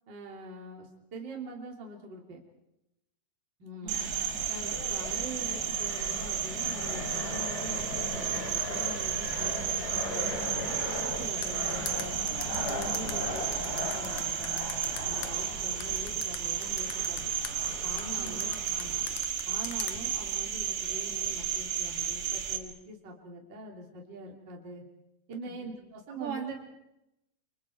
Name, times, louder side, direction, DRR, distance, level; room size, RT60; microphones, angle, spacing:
voice 1, 0.1-2.4 3.6-4.0 4.5-10.5 10.9-12.2 12.6-17.3 17.8-19.1 19.5-24.8 25.3-26.4, right 1 dB, 30° right, -1 dB, 3.3 m, -44 dB
voice 2, 3.8-4.1 12.4-12.5 18.1-18.5 25.4-25.7 26.1-26.5, right 7 dB, 55° right, 0 dB, 4.8 m, -40 dB
Fixed-wing aircraft airplane, 3.9-19.2, left 1 dB, 25° left, 4.3 m, -39 dB
Cricket, 3.9-22.6, right 8 dB, 80° right, 3.9 m, -33 dB
sound 1, 11.4-15.3 15.8-17.5 18.0-19.9, left 9 dB, 60° left, 2.3 m, -39 dB
29.5 x 26.5 x 4.7 m, 0.87 s
omnidirectional pair, 4.7 m